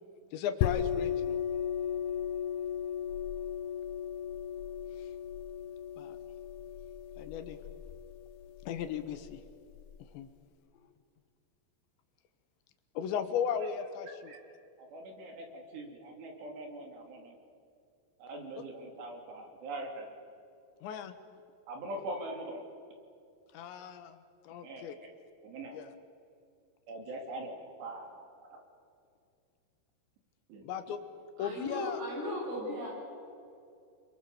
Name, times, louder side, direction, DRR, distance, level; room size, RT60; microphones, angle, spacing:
voice 1, 0.3-1.4 6.0-6.2 7.2-7.6 8.7-9.4 10.1-10.3 12.9-14.3 20.8-21.1 23.5-24.2 24.4-25.0 25.7-25.9 30.6-31.0 31.4-32.0, left 8 dB, 75° left, 9 dB, 3.4 m, -36 dB
sound 1, 0.6-10.0, left 9 dB, 90° left, 2.2 m, -36 dB
voice 2, 14.8-17.4 18.2-20.1 21.7-22.7 24.6-25.1 25.4-25.8 26.9-28.6 30.5-30.6, right 1 dB, 65° right, 2 dB, 5.0 m, -42 dB
voice 3, 31.4-32.9, equal, 90° right, -5 dB, 10.5 m, -37 dB
29.0 x 24.0 x 7.0 m, 2.4 s
omnidirectional pair, 5.5 m